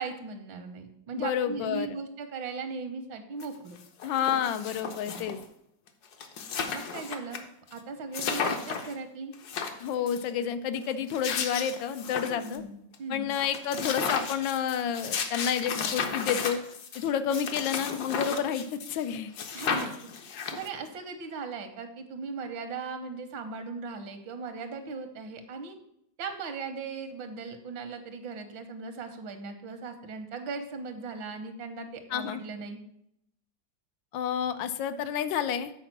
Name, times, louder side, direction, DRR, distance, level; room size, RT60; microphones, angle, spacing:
voice 1, 0.0-3.8 5.1-5.3 6.7-7.4 7.7-9.3 12.3-13.3 19.5-19.9 20.5-25.8 26.2-32.8, right 4 dB, 80° right, 7 dB, 1.7 m, -38 dB
voice 2, 1.1-1.9 4.0-5.4 9.8-12.6 13.1-16.6 16.9-19.3 32.1-32.4 34.1-35.7, left 8 dB, 80° left, 11 dB, 1.3 m, -30 dB
sound 1, 3.4-3.5 3.8-5.4 5.9-6.0 6.1-7.4 7.7-7.8 8.1-8.9 9.3-10.2 10.9-12.6 12.9-13.0 13.3-19.1 19.3-20.9, left 6 dB, 60° left, 1.3 m, -34 dB
7.2 x 4.6 x 5.9 m, 0.77 s
omnidirectional pair, 2.1 m